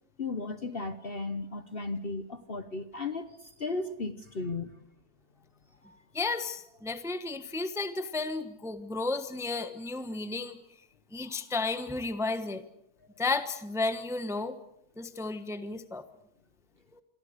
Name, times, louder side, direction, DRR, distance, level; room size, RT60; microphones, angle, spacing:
voice 1, 0.2-4.7 5.8-6.0, left 3 dB, 40° left, 10 dB, 1.2 m, -35 dB
voice 2, 6.1-10.6 11.1-12.6 13.2-14.6 15.0-16.0, left 3 dB, ahead, 10 dB, 1.1 m, -33 dB
28.5 x 23.0 x 6.7 m, 0.77 s
omnidirectional pair, 1.6 m